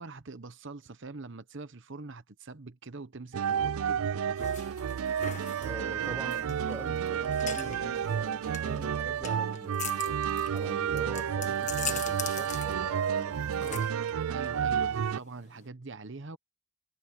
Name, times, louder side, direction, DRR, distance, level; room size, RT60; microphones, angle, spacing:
voice 1, 0.0-4.7 13.6-14.0 14.3-16.4, right 3 dB, 55° right, 0.9 m, -44 dB
sound 1, 3.3-15.2, right 8 dB, 70° right, 0.4 m, -31 dB
sound 2, 4.4-15.7, left 9 dB, 35° left, 1.4 m, -42 dB
sound 3, 4.6-11.5, left 4 dB, 70° left, 3.2 m, -58 dB
voice 2, 5.6-9.9 10.5-14.0, right 1 dB, 10° right, 1.0 m, -44 dB
head